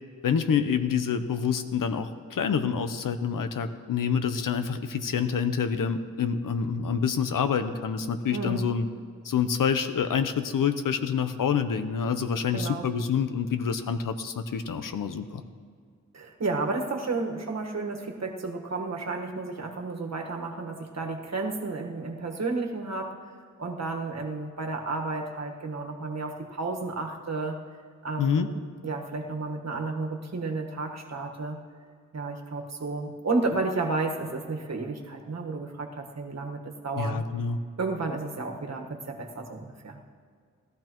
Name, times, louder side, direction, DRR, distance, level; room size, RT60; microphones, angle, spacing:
voice 1, 0.2-8.9 9.2-15.4 28.2-28.5 36.9-37.6, left 6 dB, 80° left, 10 dB, 0.8 m, -27 dB
voice 2, 8.3-8.6 12.5-12.8 16.1-23.3 23.6-27.6 28.0-31.6 32.1-37.2 37.8-40.0, right 3 dB, 55° right, 2 dB, 1.5 m, -32 dB
19.0 x 13.0 x 3.0 m, 2.1 s
wide cardioid pair, 80°, 32 cm